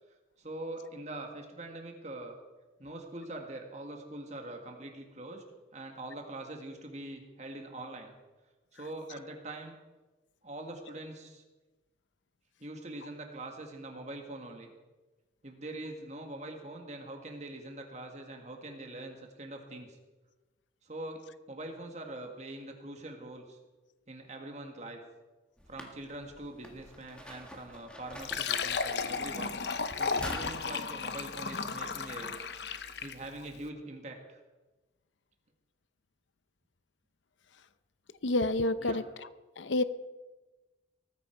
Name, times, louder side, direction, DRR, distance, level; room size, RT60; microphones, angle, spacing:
voice 1, 0.4-2.4 2.8-5.4 5.7-8.1 8.7-9.8 10.4-11.4 12.6-14.7 15.4-20.0 20.8-21.2 21.5-23.6 24.1-25.0 25.7-29.5 30.0-32.3 33.0-34.4 38.8-39.0, right 1 dB, 40° right, 3 dB, 1.8 m, -43 dB
sound 1, 25.6-30.7, equal, 5° left, 1.7 m, -47 dB
Fill (with liquid), 28.1-33.3, left 5 dB, 65° left, 0.9 m, -34 dB
voice 2, 38.2-39.0 39.6-39.8, left 2 dB, 85° left, 13 dB, 0.7 m, -28 dB
19.0 x 14.5 x 4.6 m, 1.2 s
head